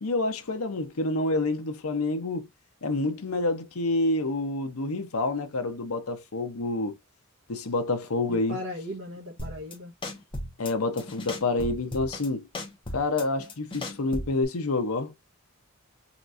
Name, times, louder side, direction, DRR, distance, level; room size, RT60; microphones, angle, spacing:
voice 1, 0.0-2.5 2.8-7.0 7.5-8.6 10.6-12.4 12.9-15.1, left 2 dB, 80° left, 0.8 m, -28 dB
voice 2, 8.3-9.9, left 1 dB, 65° right, 1.2 m, -37 dB
sound 1, 9.4-9.7 10.0-10.7 11.0-12.3 12.5-14.4, left 1 dB, 25° left, 1.1 m, -36 dB
4.1 x 3.1 x 2.5 m
head